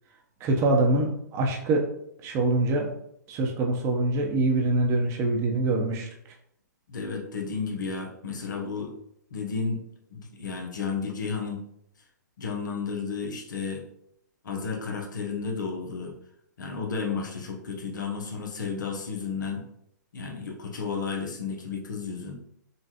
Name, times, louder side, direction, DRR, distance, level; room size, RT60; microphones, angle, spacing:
voice 1, 0.4-1.8 2.2-2.9 3.3-6.1, right 2 dB, 30° right, 1 dB, 0.8 m, -24 dB
voice 2, 6.9-8.9 9.3-9.8 10.1-11.7 12.4-13.8 14.4-16.1 16.6-19.7 20.1-22.3, left 5 dB, 80° left, 0 dB, 0.9 m, -32 dB
5.5 x 2.3 x 2.9 m, 0.73 s
hypercardioid pair, 130°, 10 cm